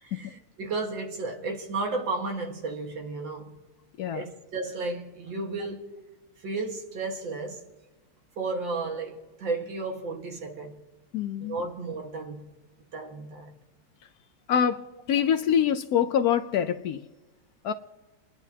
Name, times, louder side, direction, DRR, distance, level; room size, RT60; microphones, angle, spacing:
voice 1, 0.0-3.6 4.1-6.0 6.4-7.6 8.4-10.8 11.4-12.5 12.9-13.6, right 3 dB, 90° right, 2.3 m, -33 dB
voice 2, 11.1-11.6 14.5-17.0 17.6-17.7, left 8 dB, 70° left, 0.9 m, -25 dB
29.5 x 10.0 x 2.8 m
omnidirectional pair, 2.0 m